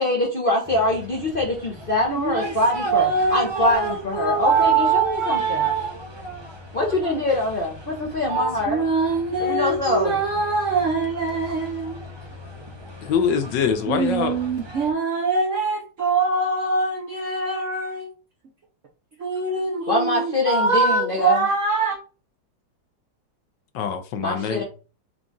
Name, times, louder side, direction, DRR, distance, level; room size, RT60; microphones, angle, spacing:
voice 1, 0.0-5.7 6.7-8.8 9.4-10.1 19.9-21.4 24.2-24.6, left 2 dB, 50° left, 0.6 m, -24 dB
sound 1, 0.6-14.9, equal, 40° right, 0.3 m, -37 dB
voice 2, 2.2-2.6 2.8-6.0 8.3-12.0 13.9-18.1 19.2-22.0, right 4 dB, 60° right, 0.8 m, -23 dB
voice 3, 13.0-14.3 23.7-24.6, left 7 dB, 75° left, 1.2 m, -24 dB
4.8 x 2.4 x 3.8 m
omnidirectional pair, 2.1 m